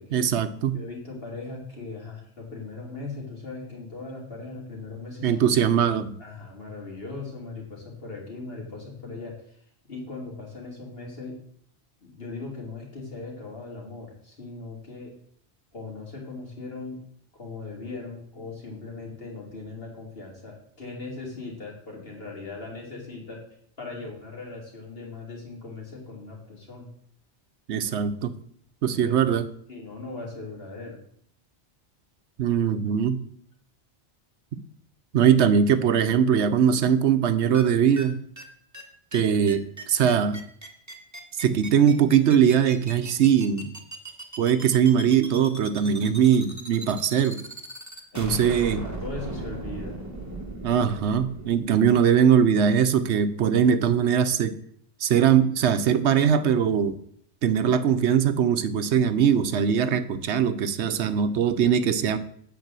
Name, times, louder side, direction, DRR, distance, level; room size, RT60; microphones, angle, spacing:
voice 1, 0.1-0.8 5.2-6.2 27.7-28.3 28.8-29.5 32.4-33.2 35.1-38.2 39.1-40.4 41.4-43.7 44.4-47.4 48.2-48.8 50.6-54.6 55.0-57.0 57.4-62.2, right 8 dB, 75° right, 11 dB, 1.0 m, -21 dB
voice 2, 0.7-5.4 6.2-9.6 9.9-11.4 12.0-15.1 15.7-17.0 17.3-23.5 23.8-26.9 29.0-29.2 29.7-31.0 48.1-48.6 48.8-50.0, left 3 dB, 55° left, -1 dB, 2.8 m, -39 dB
sound 1, 37.5-37.6 38.0-38.1 38.4-38.5 38.7-38.8 39.1-39.2 39.5-51.6, right 2 dB, 15° right, 1.2 m, -37 dB
8.1 x 4.8 x 7.4 m, 0.63 s
omnidirectional pair, 1.2 m